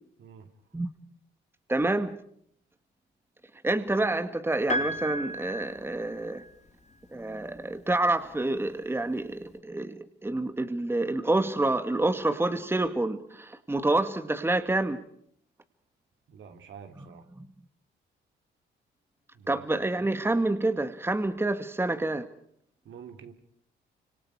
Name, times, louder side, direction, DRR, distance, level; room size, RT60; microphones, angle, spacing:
voice 1, 1.7-2.2 3.6-6.4 7.1-15.0 17.4-17.5 19.5-22.3, right 2 dB, 10° right, 8 dB, 2.0 m, -28 dB
Piano, 4.7-6.7 8.0-8.1, equal, 35° left, 2.9 m, -33 dB
voice 2, 16.3-17.2 19.3-19.5 22.8-23.3, right 7 dB, 70° right, 5 dB, 3.3 m, -47 dB
29.5 x 26.0 x 4.9 m, 0.66 s
cardioid pair, 90°, 20 cm